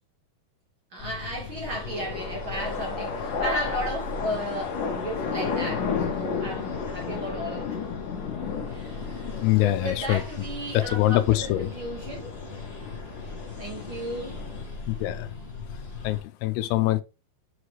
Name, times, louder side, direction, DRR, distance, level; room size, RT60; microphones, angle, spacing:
voice 1, 0.9-7.8 8.6-12.4 13.6-14.4, equal, 65° right, 1.2 m, -34 dB
sound 1, 1.0-16.2, left 3 dB, 30° left, 1.2 m, -39 dB
sound 2, 1.7-14.6, left 5 dB, 65° left, 2.5 m, -33 dB
voice 2, 9.4-10.2 10.7-11.7 14.9-15.3 16.0-17.0, left 16 dB, 85° left, 2.6 m, -23 dB
6.8 x 4.8 x 3.1 m
omnidirectional pair, 4.6 m